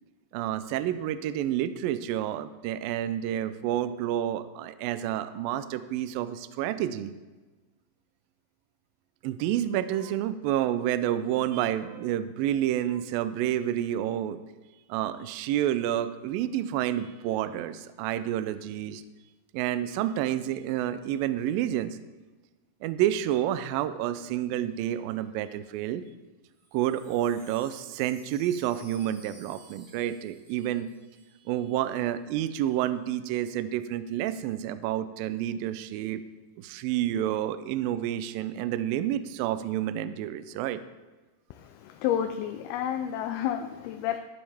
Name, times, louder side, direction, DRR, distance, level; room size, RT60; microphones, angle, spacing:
voice 1, 0.3-7.1 9.2-14.4 14.9-19.0 19.5-22.0 22.8-26.0 26.7-30.9 31.5-36.2 36.6-40.8, right 11 dB, 85° right, 13 dB, 2.1 m, -29 dB
Wind chime, 26.5-31.7 31.9-32.0 32.3-32.7, right 1 dB, 50° right, 5.0 m, -55 dB
voice 2, 41.5-44.2, left 10 dB, 80° left, 6 dB, 2.4 m, -30 dB
12.5 x 12.0 x 3.4 m, 1.2 s
omnidirectional pair, 4.6 m